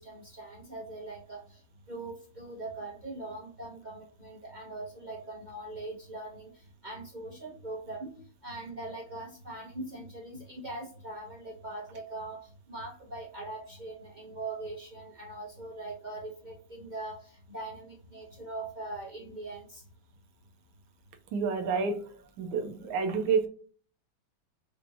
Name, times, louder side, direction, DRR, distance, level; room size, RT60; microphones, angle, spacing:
voice 1, 0.0-1.6 1.9-8.2 8.4-12.4 12.7-19.8, right 2 dB, 65° right, -3 dB, 0.4 m, -41 dB
voice 2, 21.3-22.0 22.4-23.5, right 5 dB, 80° right, 5 dB, 1.5 m, -28 dB
5.7 x 2.6 x 2.7 m, 0.43 s
omnidirectional pair, 2.2 m